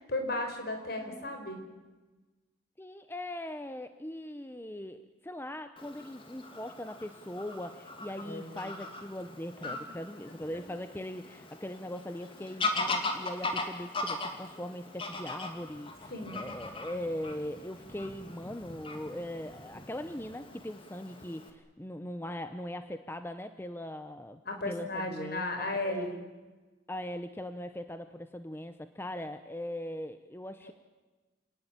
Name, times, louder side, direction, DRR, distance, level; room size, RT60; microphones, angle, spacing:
voice 1, 0.0-1.6 8.2-8.6 9.6-9.8 16.1-16.4 24.4-26.2 30.6-30.7, left 2 dB, 55° left, 5 dB, 4.9 m, -35 dB
voice 2, 2.8-24.4 24.7-26.1 26.9-30.7, left 1 dB, 10° left, 9 dB, 0.8 m, -40 dB
Fowl / Bird vocalization bird call bird song, 5.8-21.5, left 2 dB, 30° left, 2.6 m, -39 dB
27.5 x 19.0 x 9.1 m, 1.2 s
head